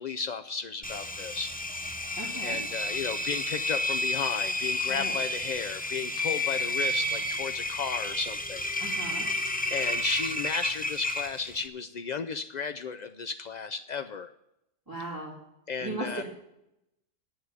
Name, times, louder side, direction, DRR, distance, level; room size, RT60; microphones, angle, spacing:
voice 1, 0.0-1.5 2.4-8.7 9.7-14.3 15.7-16.2, left 5 dB, 85° left, 9 dB, 0.3 m, -34 dB
Engine, 0.8-11.7, left 1 dB, 10° left, 0.4 m, -31 dB
voice 2, 2.2-2.6 4.9-5.1 8.8-9.3 14.9-15.3 15.8-16.2, right 2 dB, 15° right, -7 dB, 2.7 m, -37 dB
11.0 x 6.7 x 9.4 m, 0.85 s
omnidirectional pair, 1.3 m